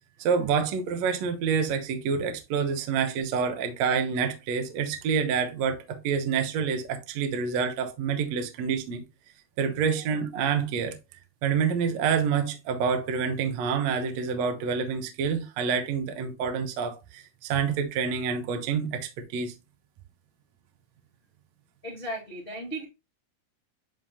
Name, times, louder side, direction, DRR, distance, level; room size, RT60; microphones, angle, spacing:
voice 1, 0.2-9.0 9.6-11.0 11.4-19.5, right 6 dB, 75° right, 1.5 m, -27 dB
voice 2, 21.8-22.8, right 1 dB, 80° left, 0.5 m, -36 dB
10.5 x 3.7 x 2.9 m
omnidirectional pair, 4.7 m